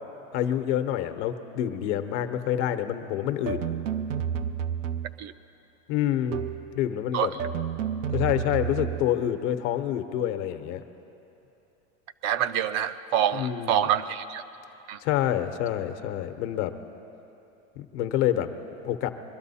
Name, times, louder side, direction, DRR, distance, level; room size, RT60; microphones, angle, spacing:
voice 1, 0.3-3.6 5.9-6.4 6.7-7.3 8.1-10.8 13.3-13.8 15.0-16.7 17.8-18.5 18.8-19.1, left 11 dB, 65° left, 8 dB, 1.0 m, -27 dB
sound 1, 3.5-5.3 6.3-6.7 7.4-9.2, right 8 dB, 90° right, 0.7 m, -30 dB
voice 2, 12.2-14.4 14.9-15.0, right 10 dB, 45° right, 11 dB, 0.5 m, -26 dB
22.0 x 12.0 x 4.2 m, 2.9 s
supercardioid pair, 125°, 37 cm